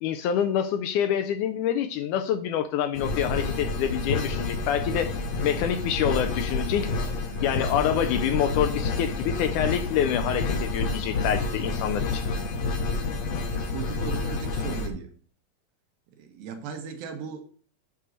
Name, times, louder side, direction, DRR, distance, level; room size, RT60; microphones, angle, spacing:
voice 1, 0.0-5.1 5.4-7.1 7.4-12.2, left 9 dB, 85° left, 1.9 m, -26 dB
sound 1, 2.9-14.9, left 3 dB, 65° left, 1.7 m, -29 dB
voice 2, 13.5-15.1 16.2-17.4, right 6 dB, 90° right, 3.0 m, -37 dB
8.3 x 3.9 x 6.3 m
omnidirectional pair, 4.1 m